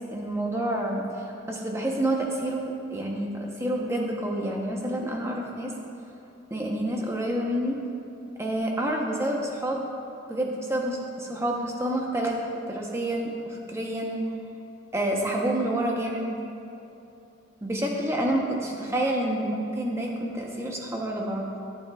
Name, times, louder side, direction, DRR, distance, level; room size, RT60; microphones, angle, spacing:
voice 1, 0.1-5.7 6.5-7.8 8.4-9.8 10.3-12.4 12.7-14.3 14.9-16.3 17.6-21.4, right 1 dB, 15° right, -1 dB, 0.9 m, -28 dB
14.0 x 8.4 x 2.4 m, 2.8 s
head